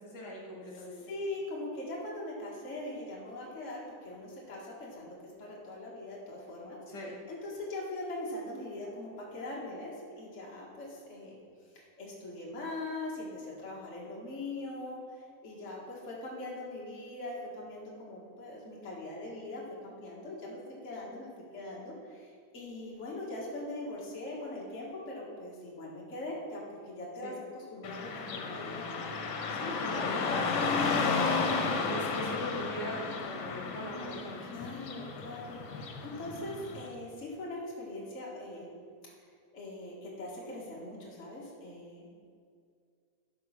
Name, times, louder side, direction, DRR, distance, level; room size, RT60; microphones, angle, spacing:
voice 1, 0.0-1.0 6.9-7.2 27.2-27.3 29.5-34.4, left 1 dB, 60° left, -4 dB, 2.4 m, -39 dB
voice 2, 0.8-11.4 11.7-29.0 34.4-38.7 39.5-42.1, left 2 dB, 40° left, -5 dB, 2.0 m, -41 dB
Car passing by / Traffic noise roadway noise, 27.8-36.9, left 4 dB, 80° left, 1.8 m, -33 dB
13.0 x 4.6 x 5.9 m, 2.3 s
omnidirectional pair, 2.2 m